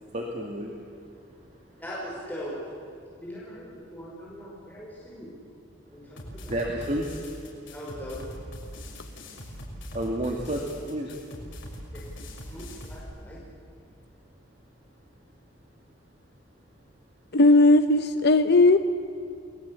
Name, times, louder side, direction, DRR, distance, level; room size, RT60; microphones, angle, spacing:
voice 1, 0.1-0.8 6.5-7.1 9.9-11.1, right 1 dB, 40° right, 0 dB, 2.5 m, -30 dB
voice 2, 1.2-2.6 3.1-5.3 5.9-6.6 7.7-8.2 11.9-12.0 12.5-13.4, equal, 10° left, -6 dB, 5.6 m, -41 dB
sound 1, 6.2-13.0, equal, 85° left, 6.3 m, -41 dB
voice 3, 17.3-18.8, left 2 dB, 60° left, 9 dB, 0.8 m, -17 dB
29.0 x 20.5 x 8.5 m, 2.5 s
head